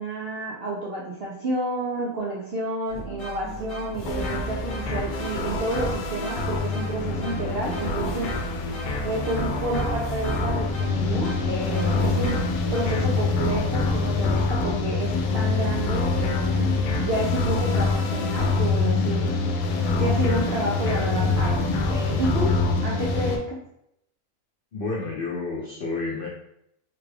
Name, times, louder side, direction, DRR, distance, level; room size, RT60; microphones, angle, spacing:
voice 1, 0.0-8.4 9.0-12.4 12.7-19.3 20.0-22.6 22.8-23.6, right 2 dB, 70° right, -4 dB, 0.5 m, -30 dB
sound 1, 2.9-13.5, right 2 dB, 35° left, 1.1 m, -38 dB
sound 2, 4.0-23.4, left 3 dB, 80° left, 1.1 m, -25 dB
voice 2, 24.7-26.3, left 3 dB, 60° left, -4 dB, 0.6 m, -30 dB
3.5 x 2.3 x 3.3 m, 0.76 s
omnidirectional pair, 1.7 m